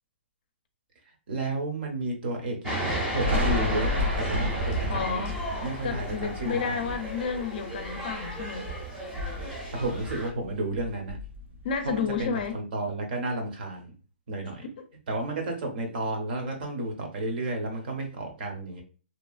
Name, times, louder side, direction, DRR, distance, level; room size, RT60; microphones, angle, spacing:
voice 1, 1.3-5.2 5.6-6.9 9.7-11.2 11.8-13.9 14.3-14.7 15.1-18.8, right 2 dB, 55° right, 0.9 m, -32 dB
sound 1, 2.6-10.3, right 1 dB, 10° right, 0.7 m, -33 dB
Thunder, 3.2-8.6 9.0-10.5 10.7-12.4, left 2 dB, 85° right, 0.8 m, -33 dB
voice 2, 4.9-5.3 5.8-8.7 11.6-12.6, left 6 dB, 50° left, 0.5 m, -31 dB
2.9 x 2.3 x 2.4 m
hypercardioid pair, 165°, 6 cm